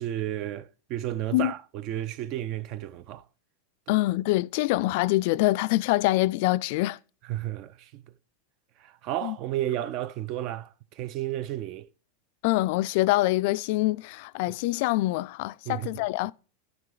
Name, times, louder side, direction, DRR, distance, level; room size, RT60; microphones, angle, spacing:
voice 1, 0.0-3.2 3.9-4.0 7.3-8.0 8.8-11.9 15.7-16.0, right 13 dB, 45° right, 0.4 m, -32 dB
voice 2, 3.9-7.0 9.2-9.4 12.4-16.3, left 18 dB, 60° left, 0.3 m, -25 dB
12.5 x 4.9 x 3.9 m
supercardioid pair, 140°, 0 cm